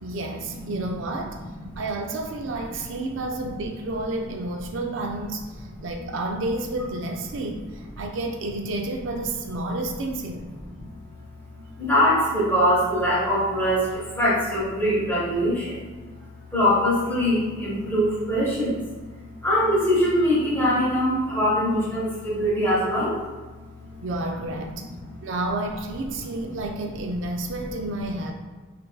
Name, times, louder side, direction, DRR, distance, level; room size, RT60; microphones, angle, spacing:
voice 1, 0.0-1.4 1.8-10.5 24.0-24.8 25.2-28.3, right 2 dB, 70° right, 3 dB, 0.4 m, -30 dB
voice 2, 11.8-15.7 16.5-23.2 23.8-23.9, equal, 10° left, -9 dB, 1.2 m, -22 dB
5.2 x 2.5 x 2.3 m, 1.3 s
head